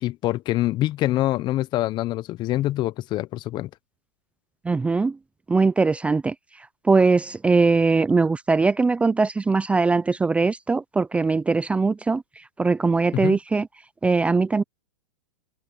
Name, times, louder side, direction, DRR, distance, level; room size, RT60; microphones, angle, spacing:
voice 1, 0.0-3.7 13.1-13.4, left 15 dB, 35° left, 1.0 m, -25 dB
voice 2, 4.6-5.2 5.5-6.3 6.9-12.2 12.6-13.7 14.0-14.6, right 4 dB, 10° right, 0.6 m, -21 dB
open air
hypercardioid pair, 125°, 14 cm